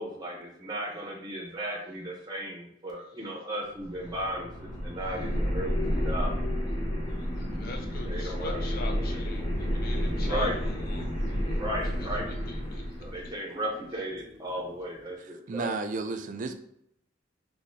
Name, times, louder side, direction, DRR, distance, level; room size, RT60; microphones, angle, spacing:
voice 1, 0.0-6.3 8.1-8.6 10.2-10.5 11.6-12.3 13.0-15.7, equal, 20° right, -1 dB, 0.7 m, -35 dB
sound 1, 3.7-13.3, equal, 30° left, 0.8 m, -31 dB
sound 2, 7.0-15.2, left 1 dB, 65° left, 1.1 m, -50 dB
voice 2, 7.3-11.1 11.4-12.2 12.5-12.8 13.2-13.3 14.5-14.6, left 3 dB, 50° left, 3 dB, 0.4 m, -42 dB
voice 3, 15.2-16.5, right 3 dB, 40° right, 8 dB, 0.3 m, -33 dB
4.0 x 2.7 x 2.6 m, 0.74 s
head